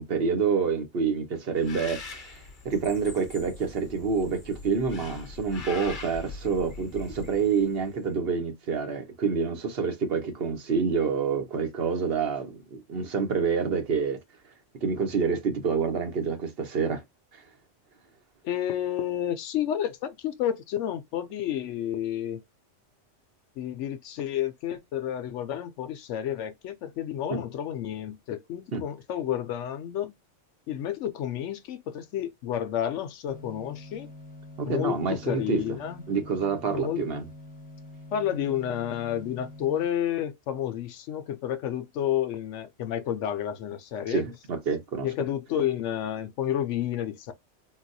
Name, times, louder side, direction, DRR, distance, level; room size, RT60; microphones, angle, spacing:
voice 1, 0.0-14.2 14.8-17.0 27.3-27.4 28.7-28.8 34.6-35.8 36.1-37.3 44.1-45.1, right 5 dB, 55° right, 1.1 m, -27 dB
Bird, 1.6-8.0, left 3 dB, 45° left, 1.0 m, -42 dB
voice 2, 18.4-22.4 23.6-30.1 30.7-34.1 34.6-36.0 36.7-37.0 38.1-44.2 45.0-47.3, left 10 dB, 80° left, 0.9 m, -30 dB
sound 1, 33.3-39.9, left 1 dB, 10° left, 0.7 m, -46 dB
3.9 x 2.3 x 2.6 m
omnidirectional pair, 1.2 m